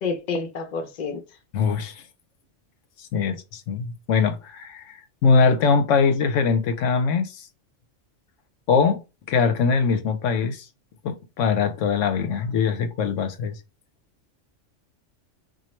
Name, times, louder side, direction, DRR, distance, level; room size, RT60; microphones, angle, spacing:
voice 1, 0.0-1.2, left 4 dB, 45° left, 0.7 m, -28 dB
voice 2, 1.5-2.0 3.0-7.5 8.7-9.0 9.3-10.6 11.0-13.5, left 5 dB, 80° left, 0.9 m, -22 dB
3.0 x 2.4 x 4.3 m
omnidirectional pair, 1.3 m